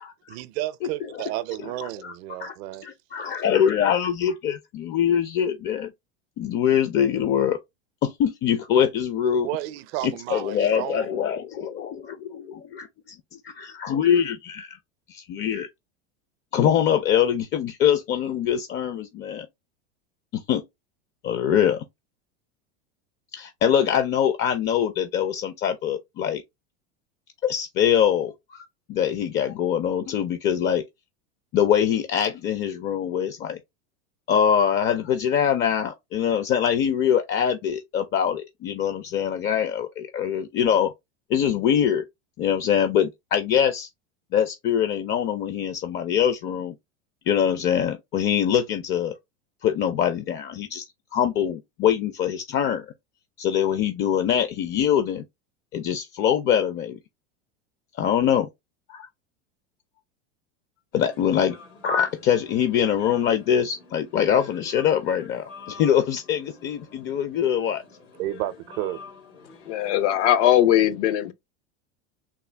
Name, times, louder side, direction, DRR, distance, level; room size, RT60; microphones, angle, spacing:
voice 1, 0.3-2.9 9.4-11.2 68.2-69.0, right 15 dB, 60° right, 0.6 m, -32 dB
voice 2, 1.6-2.1 2.4-2.5 2.8-5.9 6.4-7.6 8.0-9.5 10.0-13.2 13.4-14.8 15.1-15.7 16.5-19.5 20.3-20.6 21.2-21.8 23.3-26.4 27.4-30.8 31.5-33.6 34.3-40.9 41.3-42.0 42.4-43.9 44.3-46.7 47.3-49.1 49.6-50.8 51.1-52.9 53.4-55.2 55.7-57.0 58.0-58.5 58.9-59.1 60.9-61.6 61.8-67.8, left 9 dB, 30° left, 0.5 m, -23 dB
sound 1, 60.9-70.5, left 5 dB, 90° left, 1.9 m, -47 dB
voice 3, 69.7-71.3, left 11 dB, 75° left, 0.8 m, -20 dB
3.6 x 2.2 x 3.2 m
supercardioid pair, 115°, 36 cm